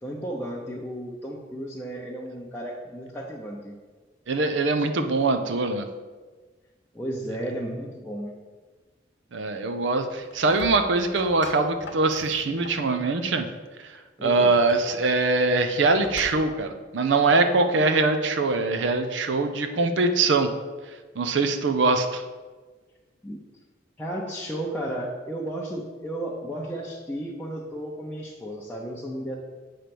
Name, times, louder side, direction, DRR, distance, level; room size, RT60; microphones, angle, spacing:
voice 1, 0.0-3.8 6.9-8.3 14.2-14.5 23.2-23.4 24.0-29.4, right 1 dB, 10° left, -5 dB, 0.7 m, -33 dB
voice 2, 4.3-5.9 9.3-13.5 13.8-13.9 14.2-20.5 21.2-22.2, right 3 dB, 70° right, 7 dB, 0.6 m, -23 dB
sound 1, 10.1-12.9 14.5-16.7, left 2 dB, 65° left, 1.0 m, -43 dB
8.1 x 3.3 x 5.9 m, 1.4 s
head